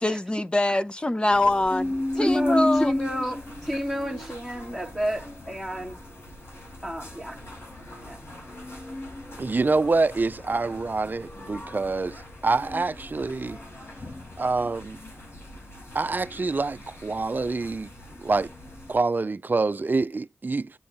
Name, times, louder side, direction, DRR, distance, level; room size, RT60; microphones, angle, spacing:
voice 1, 0.0-2.9, left 1 dB, 20° left, 0.8 m, -24 dB
sound 1, 1.3-18.9, left 1 dB, 65° left, 5.0 m, -35 dB
voice 2, 2.2-6.0 6.8-7.4 8.0-8.3 8.9-9.4, equal, 5° left, 2.3 m, -32 dB
voice 3, 9.4-13.6 14.4-15.0 15.9-17.9 18.2-18.5 18.9-20.7, right 3 dB, 45° right, 0.6 m, -26 dB
8.6 x 7.2 x 4.2 m
cardioid pair, 60°, 4 cm